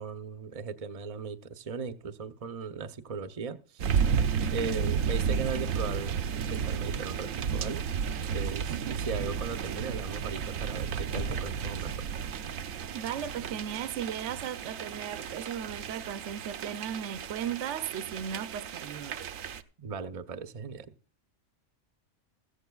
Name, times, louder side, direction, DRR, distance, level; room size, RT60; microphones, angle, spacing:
voice 1, 0.0-4.0 4.5-7.9 8.3-12.1 19.8-20.9, right 5 dB, 35° right, 0.7 m, -38 dB
sound 1, 3.8-19.6, right 7 dB, 85° right, 1.1 m, -33 dB
Knock, 11.2-11.8, left 5 dB, 45° left, 0.6 m, -43 dB
voice 2, 12.9-19.2, right 9 dB, 65° right, 0.9 m, -36 dB
15.0 x 15.0 x 2.3 m
omnidirectional pair, 1.4 m